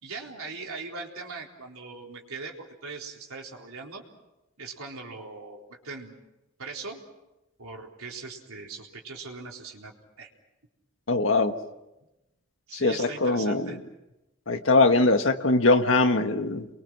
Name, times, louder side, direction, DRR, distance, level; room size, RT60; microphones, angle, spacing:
voice 1, 0.0-4.0 4.6-6.2 6.6-7.0 7.6-10.3 12.7-13.8, right 4 dB, 85° right, 0 dB, 3.9 m, -40 dB
voice 2, 11.1-11.5 12.7-13.7 14.5-16.7, left 3 dB, 65° left, 6 dB, 1.5 m, -22 dB
29.5 x 23.0 x 6.1 m, 0.98 s
head